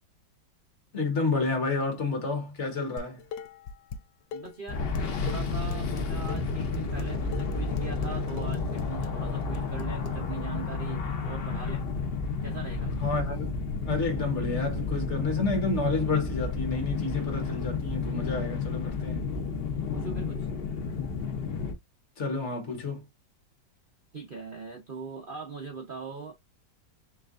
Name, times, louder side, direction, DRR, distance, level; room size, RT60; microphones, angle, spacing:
voice 1, 0.9-3.3 13.0-13.4 13.8-19.3 22.2-23.0, left 3 dB, 40° left, 1.4 m, -30 dB
Dishes pots and pans, 3.0-4.0 4.3-10.1, left 6 dB, 90° left, 1.3 m, -40 dB
voice 2, 4.3-11.9 12.4-13.0 19.9-20.5 24.1-26.3, right 4 dB, 85° right, 0.4 m, -41 dB
sound 1, 4.7-21.7, left 4 dB, 75° left, 0.5 m, -31 dB
4.5 x 3.3 x 2.4 m
omnidirectional pair, 2.1 m